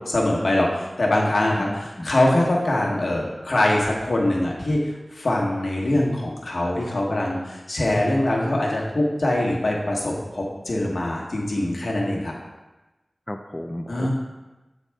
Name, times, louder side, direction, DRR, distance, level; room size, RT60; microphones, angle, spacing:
voice 1, 0.0-12.3 13.9-14.1, left 1 dB, 80° left, -2 dB, 1.2 m, -23 dB
voice 2, 1.5-2.1 13.3-14.1, left 1 dB, 25° left, 4 dB, 0.3 m, -34 dB
8.4 x 4.1 x 3.4 m, 1.1 s
wide cardioid pair, 65°, 0 cm